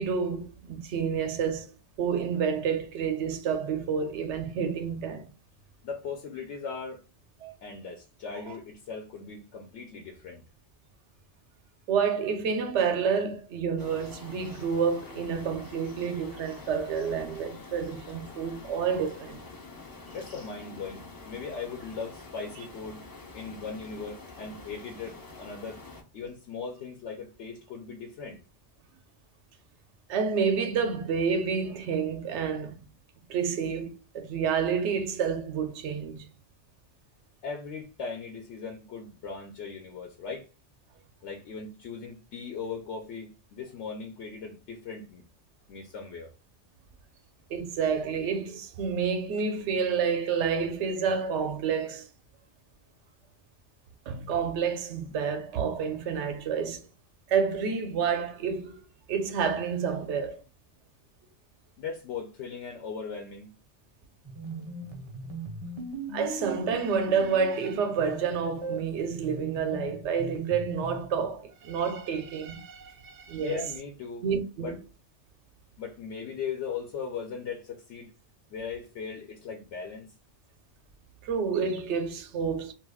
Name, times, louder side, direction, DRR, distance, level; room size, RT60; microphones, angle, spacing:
voice 1, 0.0-5.3 7.4-7.5 8.5-8.6 11.9-19.4 30.1-32.8 33.3-36.3 47.5-52.1 54.1-56.8 57.3-58.7 59.1-60.4 66.1-73.6 74.2-74.8 81.2-82.7, right 6 dB, 90° right, 0.9 m, -29 dB
voice 2, 5.8-7.0 7.6-10.4 20.1-23.0 23.3-25.8 26.1-28.4 37.4-40.5 41.2-45.2 45.7-46.3 61.8-63.5 73.4-74.3 74.6-74.8 75.8-78.1 78.5-80.1, left 5 dB, 85° left, 0.9 m, -38 dB
sound 1, 13.8-26.0, left 3 dB, 35° left, 0.3 m, -46 dB
sound 2, 64.2-71.1, right 2 dB, 40° right, 0.5 m, -39 dB
2.4 x 2.3 x 3.4 m
omnidirectional pair, 1.1 m